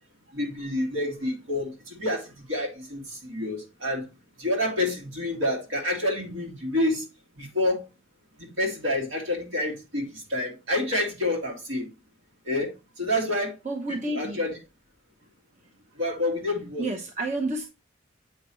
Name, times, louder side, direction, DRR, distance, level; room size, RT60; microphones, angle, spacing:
voice 1, 0.3-4.1 4.4-7.0 7.4-7.9 8.4-11.9 12.5-12.7 13.0-13.6 13.9-14.6 16.0-16.9, left 1 dB, 75° right, 2.2 m, -28 dB
voice 2, 13.6-14.4 16.8-17.7, right 2 dB, 35° right, 0.8 m, -30 dB
8.0 x 5.0 x 3.1 m
head